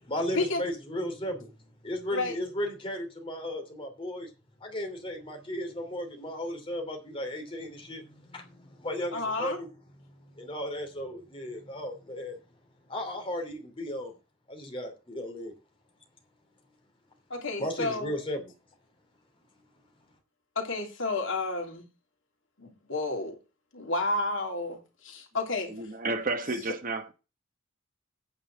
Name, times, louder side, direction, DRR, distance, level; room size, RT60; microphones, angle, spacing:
voice 1, 0.0-1.5 1.8-4.3 4.6-9.7 10.3-12.4 12.9-14.1 14.5-15.5 17.6-18.4, left 1 dB, 25° left, 2.9 m, -35 dB
voice 2, 9.1-9.6 17.3-18.1 20.5-21.8 22.6-23.4 23.7-25.7, left 2 dB, 65° left, 2.9 m, -31 dB
voice 3, 25.6-27.1, right 2 dB, 40° right, 1.1 m, -31 dB
9.0 x 5.5 x 7.4 m
head